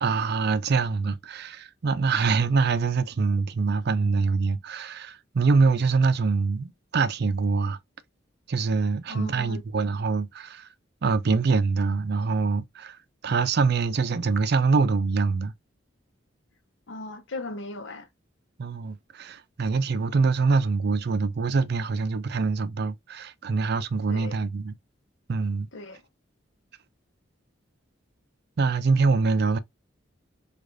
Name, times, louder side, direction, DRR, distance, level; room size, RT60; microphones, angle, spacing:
voice 1, 0.0-7.8 8.5-10.7 11.0-13.0 13.2-15.5 18.6-24.7 25.3-25.7 28.6-29.6, right 4 dB, 55° right, 0.4 m, -24 dB
voice 2, 9.1-9.6 16.9-18.1 24.1-24.4 25.7-26.0, left 2 dB, 70° left, 0.8 m, -37 dB
4.8 x 2.5 x 2.5 m
head